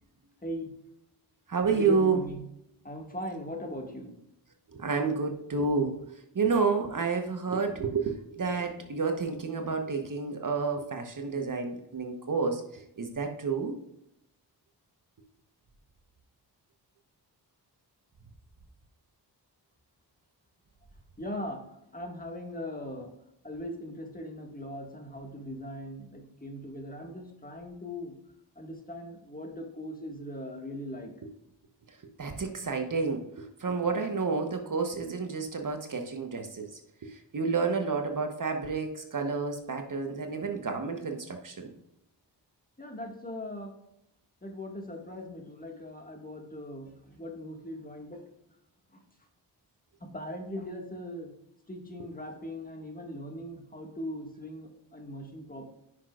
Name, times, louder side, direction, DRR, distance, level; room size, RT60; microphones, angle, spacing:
voice 1, 0.4-0.7 1.7-2.4 2.8-4.1 21.2-21.6 21.9-23.1 23.4-28.1 28.6-31.1 42.8-43.7 44.4-48.2 48.9-49.0 50.0-51.3 51.7-55.6, left 1 dB, 20° left, 2 dB, 1.8 m, -39 dB
voice 2, 1.5-2.2 4.7-13.7 32.2-36.7 37.0-41.7, right 4 dB, 50° right, 5 dB, 1.1 m, -30 dB
9.8 x 6.0 x 2.4 m, 0.81 s
cardioid pair, 65°, 42 cm